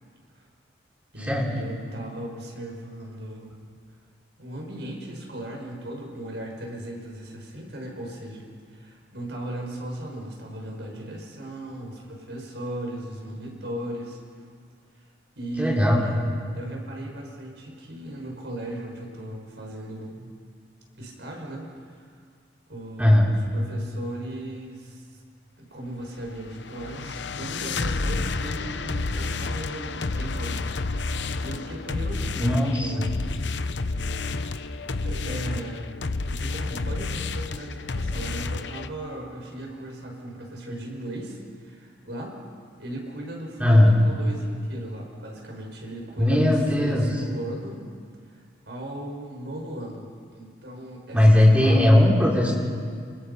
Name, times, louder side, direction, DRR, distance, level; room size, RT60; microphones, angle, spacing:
voice 1, 1.1-3.5 4.4-8.4 8.7-14.2 14.9-15.1 15.4-16.3 16.5-20.3 21.0-22.2 22.7-25.2 25.6-33.4 34.5-34.6 35.0-42.4 42.8-47.9 48.2-51.9, right 1 dB, 60° right, 0 dB, 6.0 m, -37 dB
voice 2, 15.6-16.0 23.0-23.3 32.4-32.9 43.6-43.9 46.2-47.1 51.1-52.5, left 1 dB, 5° right, -4 dB, 5.2 m, -18 dB
sound 1, 26.2-38.9, left 3 dB, 65° left, 0.8 m, -30 dB
29.0 x 29.0 x 5.7 m, 2.1 s
head